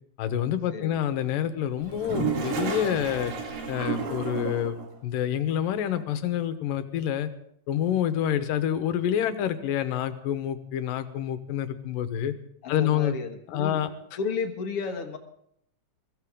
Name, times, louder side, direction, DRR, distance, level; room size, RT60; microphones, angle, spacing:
voice 1, 0.2-3.3 3.7-4.8 5.0-7.3 7.7-12.3 12.7-13.2 13.5-13.9, left 10 dB, 80° left, 10 dB, 2.6 m, -27 dB
voice 2, 0.7-1.1 12.6-13.8 14.2-15.2, left 5 dB, 55° left, 4 dB, 1.8 m, -33 dB
Toilet flush, 1.8-4.9, right 6 dB, 70° right, 3.7 m, -31 dB
22.5 x 15.5 x 3.7 m, 0.69 s
omnidirectional pair, 4.1 m